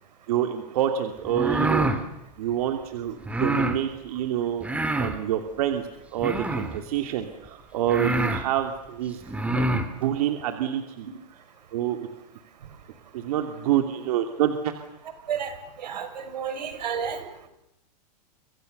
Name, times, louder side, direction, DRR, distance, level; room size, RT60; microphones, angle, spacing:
voice 1, 0.3-1.9 2.4-4.7 5.0-9.2 9.5-11.4 11.7-12.1 13.1-14.6, right 11 dB, 60° right, 6 dB, 2.9 m, -27 dB
sound 1, 1.2-2.0 3.2-3.8 4.6-5.2 6.2-6.8 7.5-7.6 7.9-8.4 9.2-9.9, right 1 dB, 5° right, 2.6 m, -26 dB
voice 2, 15.8-17.2, right 7 dB, 85° right, 9 dB, 5.6 m, -31 dB
30.0 x 26.5 x 6.8 m, 0.86 s
hypercardioid pair, 145°, 21 cm